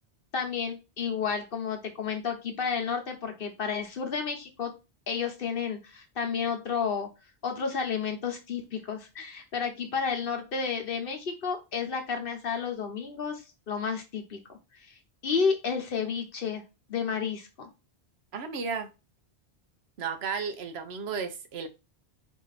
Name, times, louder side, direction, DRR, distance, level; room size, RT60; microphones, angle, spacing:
voice 1, 0.3-4.7 5.1-7.1 7.4-14.9 15.2-16.6 16.9-17.7, left 6 dB, 60° left, 1.1 m, -31 dB
voice 2, 18.3-18.9 20.0-21.7, right 5 dB, 75° right, 1.0 m, -33 dB
4.7 x 2.7 x 4.0 m
omnidirectional pair, 1.1 m